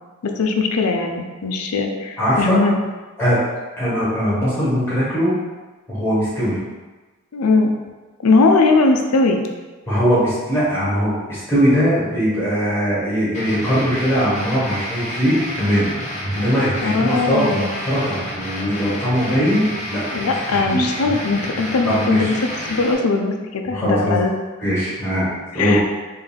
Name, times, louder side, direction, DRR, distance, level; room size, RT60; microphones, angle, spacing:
voice 1, 0.2-2.8 7.3-7.7 8.2-9.4 16.8-17.7 20.1-24.3 25.5-25.8, left 3 dB, 75° left, 4 dB, 0.5 m, -19 dB
voice 2, 3.8-5.3 5.9-6.6 9.9-15.9 16.3-19.6 19.9-20.0 20.5-20.8 21.8-22.3 23.7-24.2 24.6-25.8, equal, 10° left, -10 dB, 1.4 m, -20 dB
sound 1, 13.3-22.9, equal, 30° left, 0.9 m, -29 dB
3.5 x 2.6 x 3.6 m, 1.3 s
head